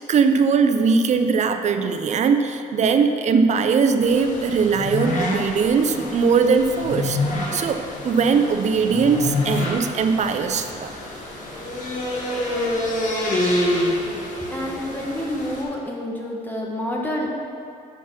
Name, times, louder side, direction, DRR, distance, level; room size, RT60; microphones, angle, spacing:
voice 1, 0.1-7.2 7.5-10.9, right 5 dB, 45° right, 7 dB, 0.6 m, -20 dB
sound 1, 4.0-15.6, left 1 dB, 50° left, 1.8 m, -27 dB
voice 2, 14.5-17.4, left 1 dB, 10° left, -2 dB, 1.2 m, -28 dB
7.0 x 5.8 x 5.9 m, 2.5 s
cardioid pair, 110°, 17 cm